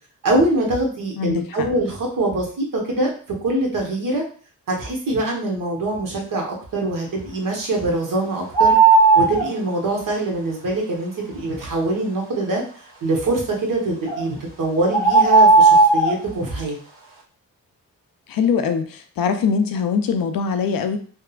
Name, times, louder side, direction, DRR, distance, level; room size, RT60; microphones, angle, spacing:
voice 1, 0.2-3.1 3.4-4.2 4.7-8.7 9.1-12.6 13.0-16.8, right 2 dB, 60° right, -1 dB, 1.1 m, -23 dB
sound 1, 8.5-9.5 14.1-14.2 14.9-16.2, right 3 dB, 35° right, 1.3 m, -13 dB
voice 2, 18.3-21.0, left 6 dB, 70° left, 8 dB, 0.5 m, -22 dB
3.4 x 2.1 x 2.3 m, 0.42 s
cardioid pair, 60°, 36 cm